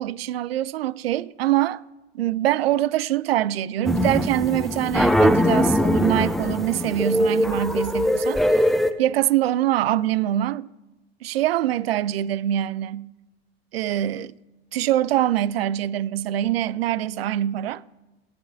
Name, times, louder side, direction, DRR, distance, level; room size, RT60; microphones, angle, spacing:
voice 1, 0.0-1.8 2.1-8.4 9.0-10.7 11.2-13.1 13.7-14.3 14.7-17.9, right 13 dB, 70° right, 0.5 m, -24 dB
sound 1, 3.8-8.9, left 1 dB, ahead, 0.3 m, -21 dB
18.0 x 11.0 x 2.7 m
figure-of-eight pair, 85°, 31 cm